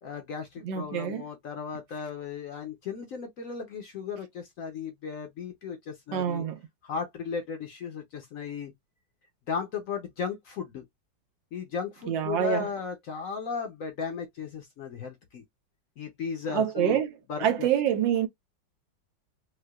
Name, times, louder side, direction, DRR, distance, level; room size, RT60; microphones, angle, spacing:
voice 1, 0.0-6.5 6.8-8.7 9.5-10.8 11.5-15.4 16.0-17.0 17.3-17.7, left 6 dB, 60° left, 0.9 m, -35 dB
voice 2, 0.6-1.2 6.1-6.6 12.1-12.7 16.5-17.1 17.4-18.3, right 10 dB, 85° right, 1.5 m, -26 dB
4.6 x 2.1 x 2.2 m
omnidirectional pair, 2.0 m